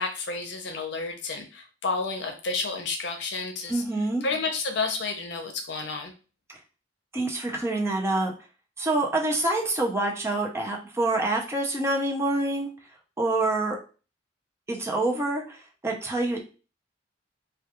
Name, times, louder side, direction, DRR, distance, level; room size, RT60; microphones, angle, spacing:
voice 1, 0.0-3.8 4.2-6.1, left 4 dB, 70° left, 4 dB, 0.6 m, -30 dB
voice 2, 3.7-4.2 7.1-8.3 8.8-12.7 13.2-13.8 14.7-16.4, right 2 dB, 15° right, 0 dB, 0.5 m, -26 dB
2.3 x 2.2 x 2.8 m, 0.34 s
head